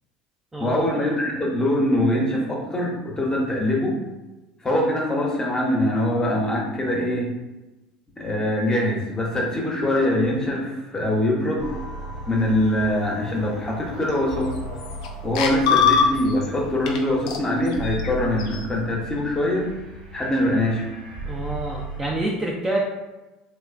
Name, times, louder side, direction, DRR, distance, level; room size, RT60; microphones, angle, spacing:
voice 1, 0.6-4.0 4.6-7.4 8.2-11.7 12.3-14.5 15.2-19.7 20.1-20.9, left 1 dB, 20° left, -2 dB, 0.8 m, -23 dB
sound 1, 11.6-22.1, right 1 dB, 90° right, 1.0 m, -36 dB
sound 2, 14.1-14.2 14.5-15.1 15.3-16.5 16.9-17.0 17.3-18.6, left 6 dB, 75° left, 0.3 m, -22 dB
voice 2, 21.3-22.8, right 1 dB, 15° right, -3 dB, 0.4 m, -27 dB
2.9 x 2.1 x 2.4 m, 1.1 s
hypercardioid pair, 75°, 3 cm